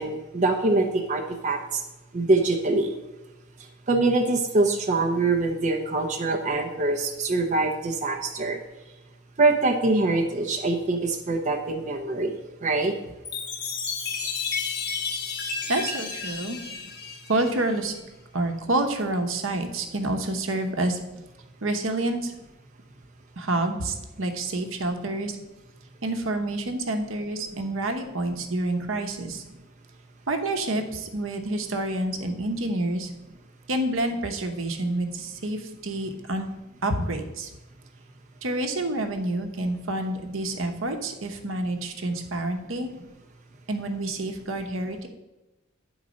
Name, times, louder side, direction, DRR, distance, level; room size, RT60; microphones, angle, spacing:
voice 1, 0.0-1.6 2.1-2.9 3.9-8.6 9.4-12.9, right 2 dB, 35° right, 2 dB, 0.7 m, -24 dB
Chime, 13.2-17.9, left 5 dB, 55° left, 1.3 m, -32 dB
voice 2, 15.7-16.6 17.3-18.0 18.3-21.0 21.6-22.3 23.4-25.4 26.0-29.4 30.3-33.1 33.7-36.5 36.8-37.5 38.4-42.9 43.7-45.1, right 2 dB, 70° right, 5 dB, 0.9 m, -28 dB
9.7 x 4.0 x 5.2 m, 1.0 s
head